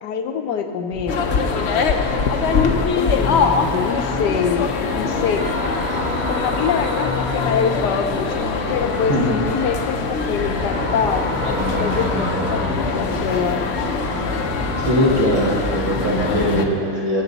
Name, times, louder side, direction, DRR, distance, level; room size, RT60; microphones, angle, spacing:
voice 1, 0.0-1.2 2.7-5.5 6.3-11.3 11.8-13.7, left 6 dB, 85° left, 6 dB, 1.4 m, -25 dB
sound 1, 0.9-16.7, left 1 dB, 10° right, 0.4 m, -31 dB
sound 2, 1.1-16.6, left 5 dB, 55° left, 0.8 m, -23 dB
sound 3, 4.7-15.4, equal, 65° right, 2.9 m, -30 dB
voice 2, 14.8-17.2, equal, 50° right, -3 dB, 2.1 m, -20 dB
20.0 x 7.6 x 4.1 m, 2.4 s
omnidirectional pair, 1.7 m